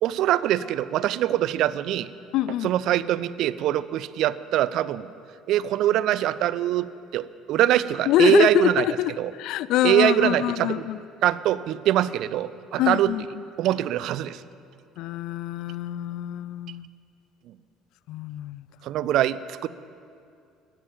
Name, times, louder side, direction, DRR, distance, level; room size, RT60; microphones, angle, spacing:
voice 1, 0.0-2.1 2.6-5.1 5.5-7.2 7.5-8.8 9.2-9.3 9.8-10.8 11.2-13.1 13.6-14.4 18.8-19.7, right 13 dB, 65° right, 17 dB, 0.4 m, -23 dB
voice 2, 2.3-2.7 8.1-11.0 12.8-13.3 15.0-16.9 18.1-18.6, left 14 dB, 70° left, 17 dB, 0.4 m, -25 dB
13.0 x 10.0 x 7.3 m, 2.4 s
supercardioid pair, 80°, 0 cm